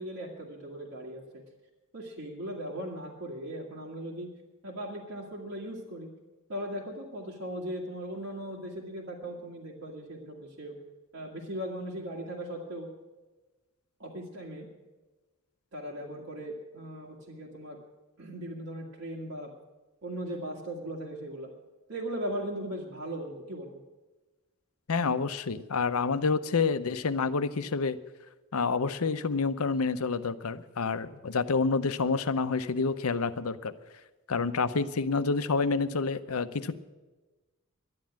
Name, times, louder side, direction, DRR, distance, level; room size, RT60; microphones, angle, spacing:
voice 1, 0.0-1.4 1.9-4.3 4.6-6.1 6.5-10.8 11.1-12.9 14.0-14.7 15.7-17.8 18.2-19.5 20.0-21.5 21.9-23.8, right 1 dB, 70° right, -4 dB, 2.0 m, -38 dB
voice 2, 24.9-28.0 28.5-33.7 34.3-36.8, left 4 dB, 85° left, 12 dB, 0.7 m, -28 dB
12.0 x 9.5 x 8.8 m, 1.2 s
head